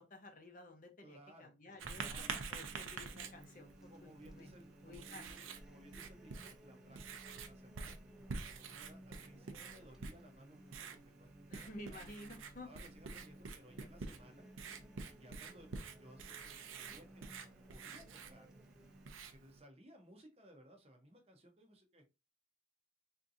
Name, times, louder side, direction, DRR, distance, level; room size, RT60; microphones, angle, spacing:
voice 1, 0.0-2.1 2.5-4.5 4.8-5.3 11.5-12.7, left 2 dB, 40° left, 5 dB, 0.7 m, -53 dB
voice 2, 1.0-1.5 1.9-2.4 3.9-8.0 8.4-12.0 12.6-14.5 15.1-17.3 17.7-18.5 19.3-22.0, equal, 30° right, 4 dB, 0.7 m, -60 dB
sound 1, 1.7-19.1, right 1 dB, 5° right, 0.3 m, -60 dB
Writing, 1.8-19.6, right 5 dB, 90° right, 0.6 m, -48 dB
3.6 x 2.7 x 2.5 m, 0.26 s
head